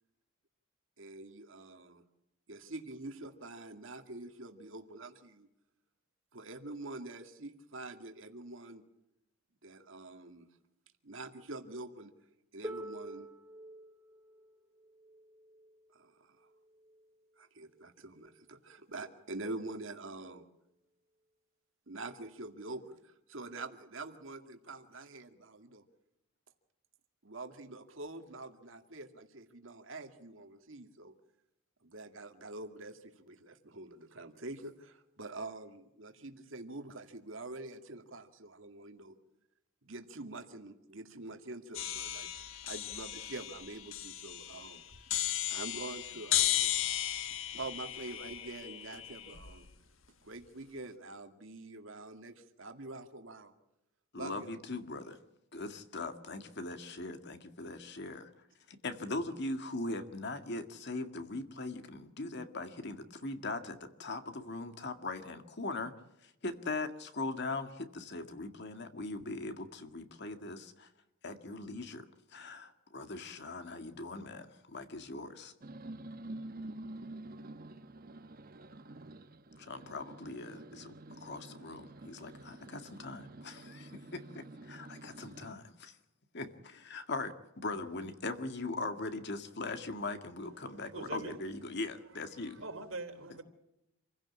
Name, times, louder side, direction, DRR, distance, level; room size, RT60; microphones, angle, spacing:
voice 1, 1.0-2.0 2.5-5.5 6.3-8.8 9.6-10.5 11.0-12.1 12.5-13.3 15.9-16.5 17.4-20.4 21.9-25.8 27.2-31.2 31.8-39.2 39.8-42.3 42.6-44.8 45.5-46.7 47.5-49.7 50.2-53.5 54.2-54.5 59.0-59.2, right 2 dB, 70° right, 2.2 m, -46 dB
Harp, 12.6-18.4 19.5-19.6, right 1 dB, 15° right, 2.6 m, -49 dB
sound 1, 41.7-49.7, left 12 dB, 75° left, 1.3 m, -35 dB
voice 2, 54.1-55.2 55.5-58.3 58.7-65.9 66.2-70.9 71.2-75.5 79.6-80.9 81.2-86.0 86.3-92.6, left 2 dB, 55° left, 1.9 m, -40 dB
sound 2, 75.6-85.5, right 2 dB, 45° right, 1.1 m, -48 dB
voice 3, 90.6-91.4 92.3-93.4, right 2 dB, 85° right, 3.7 m, -44 dB
27.0 x 16.0 x 8.6 m
head